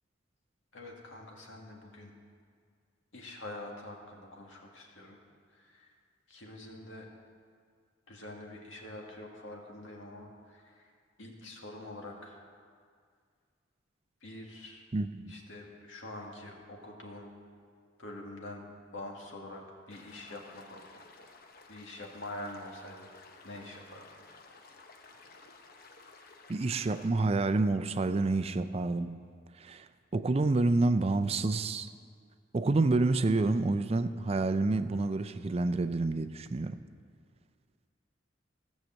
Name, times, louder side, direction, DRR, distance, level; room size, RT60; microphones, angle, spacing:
voice 1, 0.7-2.1 3.1-5.2 5.5-5.9 6.3-7.1 8.1-10.9 11.2-12.4 14.2-14.8 15.3-17.3 18.0-18.6 18.9-21.0 21.7-23.1 23.4-24.1, left 1 dB, 80° left, 0 dB, 2.0 m, -45 dB
voice 2, 14.9-15.3 26.5-29.2 29.6-29.9 30.1-31.9 32.5-36.8, right 3 dB, 30° right, 11 dB, 0.4 m, -28 dB
sound 1, 19.9-27.1, left 3 dB, 50° left, 0.9 m, -55 dB
16.0 x 6.5 x 7.4 m, 2.1 s
head